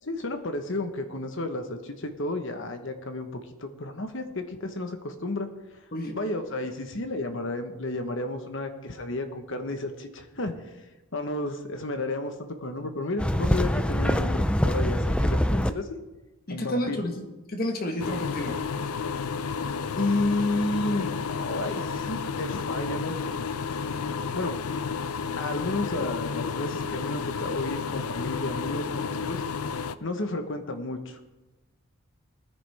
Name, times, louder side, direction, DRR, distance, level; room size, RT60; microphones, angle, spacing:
voice 1, 0.0-3.3 3.6-5.5 6.1-10.5 11.1-15.9 16.5-17.0 19.9-23.2 23.7-23.8 24.3-24.6 25.4-29.4 30.0-31.2, left 2 dB, 55° left, 7 dB, 1.2 m, -32 dB
sound 1, 13.2-15.7, equal, 5° left, 0.3 m, -24 dB
voice 2, 16.5-18.6, left 1 dB, 40° left, 4 dB, 1.5 m, -31 dB
sound 2, 18.0-29.9, left 5 dB, 80° left, 0.5 m, -31 dB
19.0 x 9.9 x 3.6 m, 1.1 s
head